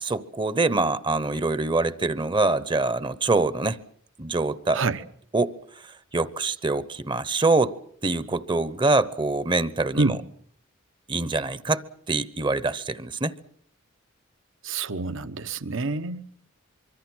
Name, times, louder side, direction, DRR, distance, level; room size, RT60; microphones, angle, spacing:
voice 1, 0.0-3.8 4.2-4.8 5.3-7.8 8.0-10.2 11.1-11.8 12.1-13.3, right 3 dB, 25° right, 0.9 m, -25 dB
voice 2, 14.6-16.3, right 3 dB, 65° right, 1.1 m, -27 dB
24.5 x 24.0 x 6.2 m
head